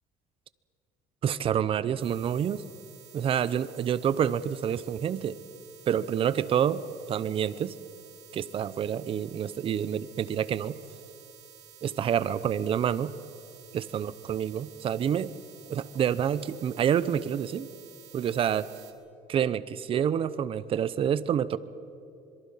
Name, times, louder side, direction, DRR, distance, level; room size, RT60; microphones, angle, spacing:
voice 1, 1.2-2.6 3.1-5.4 5.9-6.8 7.1-7.7 8.3-10.8 11.8-13.1 13.7-15.3 15.7-17.7 18.1-18.7 19.3-21.6, right 9 dB, 45° right, 16 dB, 0.8 m, -28 dB
sound 1, 2.0-18.9, right 10 dB, 65° right, 2.9 m, -52 dB
26.0 x 22.5 x 5.8 m, 2.7 s
cardioid pair, 120°, 13 cm